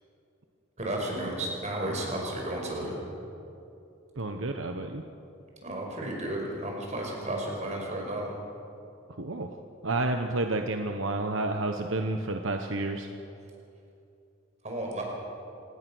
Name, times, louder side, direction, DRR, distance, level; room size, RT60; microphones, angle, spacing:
voice 1, 0.8-3.0 5.6-8.3 14.6-15.0, right 1 dB, 35° right, 0 dB, 5.3 m, -33 dB
voice 2, 4.2-5.0 9.2-9.5 9.8-13.1, right 2 dB, 75° right, 5 dB, 1.1 m, -30 dB
26.0 x 19.5 x 6.3 m, 2.7 s
head